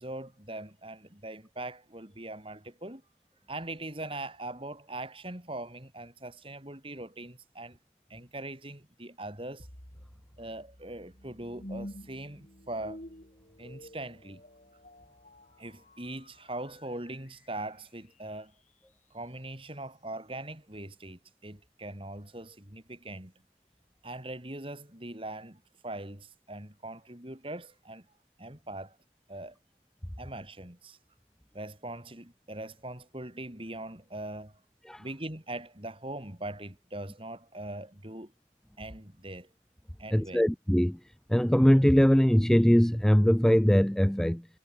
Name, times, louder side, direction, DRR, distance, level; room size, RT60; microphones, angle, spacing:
voice 1, 0.0-3.0 3.5-7.8 8.1-9.7 10.4-13.0 13.6-14.4 15.6-18.5 19.1-23.3 24.0-28.1 28.4-29.0 29.3-29.6 30.2-31.0 31.5-34.6 35.0-38.3 38.8-39.5 40.0-40.5, right 1 dB, 30° right, 3.7 m, -41 dB
sound 1, 9.6-18.7, equal, 40° left, 4.6 m, -49 dB
voice 2, 40.1-41.0 41.3-44.5, equal, 5° left, 0.4 m, -22 dB
head